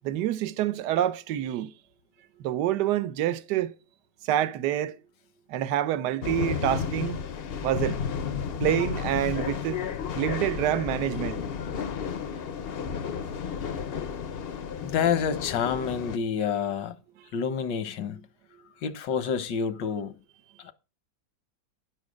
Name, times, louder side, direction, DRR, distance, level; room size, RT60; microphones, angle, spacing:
voice 1, 0.0-1.7 2.4-3.7 4.2-4.9 5.5-7.2 7.6-8.0 8.6-9.8 10.1-11.4, right 12 dB, 75° right, 1.3 m, -27 dB
sound 1, 6.2-16.2, left 7 dB, 55° left, 0.6 m, -32 dB
voice 2, 14.8-16.9 17.3-18.3 18.8-20.1 20.6-20.7, left 7 dB, 85° left, 1.7 m, -28 dB
10.5 x 7.4 x 5.1 m
omnidirectional pair, 1.9 m